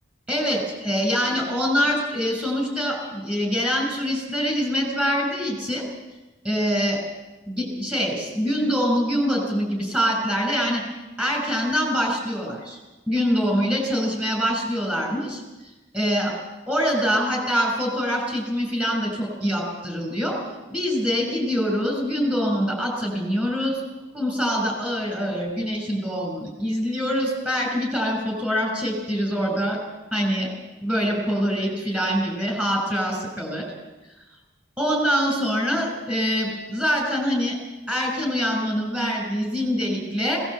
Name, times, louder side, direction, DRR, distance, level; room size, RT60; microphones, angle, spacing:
voice 1, 0.3-5.9 6.4-7.0 7.5-10.8 11.2-12.8 13.1-15.4 15.9-16.3 16.7-20.4 20.7-23.8 24.1-29.8 30.1-30.5 30.8-33.7 34.8-37.6 37.9-40.4, equal, 5° right, 0 dB, 6.1 m, -24 dB
20.0 x 18.5 x 7.9 m, 1.1 s
head